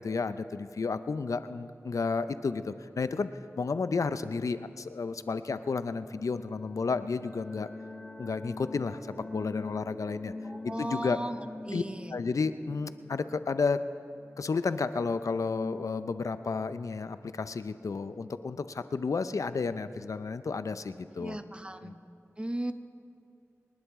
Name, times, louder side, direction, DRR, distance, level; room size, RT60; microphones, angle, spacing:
voice 1, 0.0-3.3 3.6-7.7 8.2-9.0 9.3-10.3 10.6-11.2 11.7-11.8 12.1-13.8 14.4-21.4 21.8-21.9, left 4 dB, 80° left, 12 dB, 0.5 m, -32 dB
sound 1, 6.4-14.9, left 2 dB, 10° left, 1.3 m, -45 dB
voice 2, 10.4-11.4 11.7-12.1 21.2-22.0 22.4-22.7, right 1 dB, 20° right, 9 dB, 0.9 m, -36 dB
25.5 x 11.0 x 3.6 m, 2.8 s
cardioid pair, 40°, 6 cm